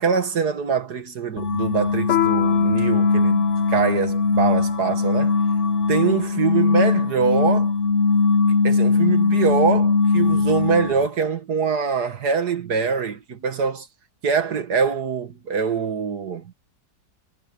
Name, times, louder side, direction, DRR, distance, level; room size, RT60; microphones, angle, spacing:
voice 1, 0.0-5.3 5.9-7.7 8.6-13.9 14.2-16.4, right 6 dB, 55° right, 2.1 m, -24 dB
sound 1, 1.4-11.1, left 4 dB, 40° left, 1.4 m, -20 dB
Piano, 2.1-7.0, left 13 dB, 75° left, 0.6 m, -30 dB
omnidirectional pair, 2.1 m